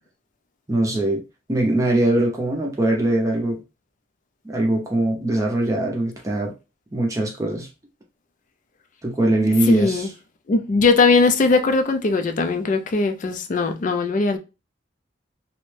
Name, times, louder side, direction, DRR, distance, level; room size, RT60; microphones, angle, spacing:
voice 1, 0.7-1.2 1.5-3.6 4.4-6.5 6.9-7.7 9.0-10.1, right 1 dB, 15° right, 0.5 m, -21 dB
voice 2, 9.7-10.1 10.5-14.4, left 3 dB, 40° left, 0.4 m, -19 dB
2.6 x 2.1 x 3.2 m
head